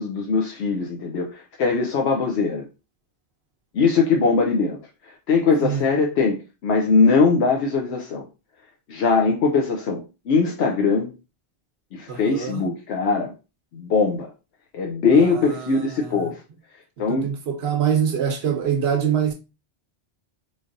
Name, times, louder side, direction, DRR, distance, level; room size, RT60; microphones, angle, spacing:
voice 1, 0.0-2.6 3.7-4.8 5.3-6.4 6.6-8.2 8.9-11.1 11.9-13.3 13.7-14.3 14.7-16.4 17.0-17.3, left 4 dB, 80° left, 0.9 m, -21 dB
voice 2, 12.1-12.7 15.1-16.3 17.0-19.3, right 8 dB, 75° right, 0.9 m, -25 dB
3.9 x 3.2 x 2.5 m
omnidirectional pair, 1.1 m